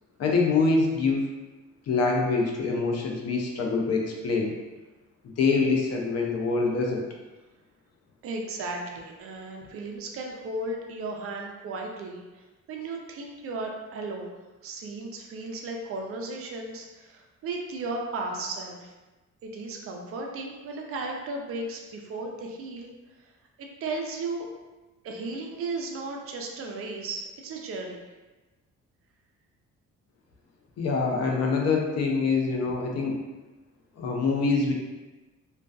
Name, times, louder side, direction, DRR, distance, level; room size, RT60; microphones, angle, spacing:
voice 1, 0.2-1.2 1.9-4.5 5.2-7.1 30.8-33.2 34.0-34.7, left 4 dB, 55° left, 0 dB, 0.6 m, -25 dB
voice 2, 8.2-14.4 14.6-18.9 19.4-22.9 23.6-24.5 25.0-28.0, right 2 dB, 50° right, 1 dB, 0.4 m, -35 dB
2.5 x 2.2 x 2.2 m, 1.2 s
cardioid pair, 90°, 30 cm